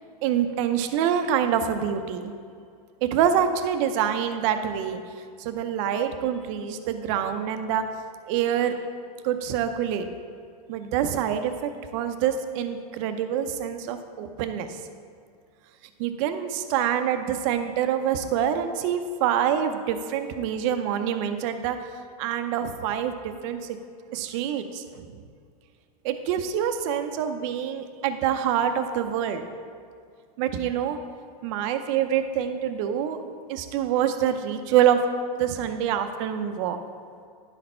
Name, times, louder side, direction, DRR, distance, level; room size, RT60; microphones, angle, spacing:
voice 1, 0.2-2.3 3.0-5.0 5.4-7.8 8.3-8.7 9.2-10.1 10.7-14.8 16.0-21.8 22.2-23.8 24.1-25.1 26.0-29.4 30.4-31.0 31.4-33.2 33.5-35.0 35.4-36.8, right 9 dB, 50° right, 8 dB, 0.6 m, -26 dB
10.5 x 4.2 x 4.4 m, 2.3 s
supercardioid pair, 145°, 20 cm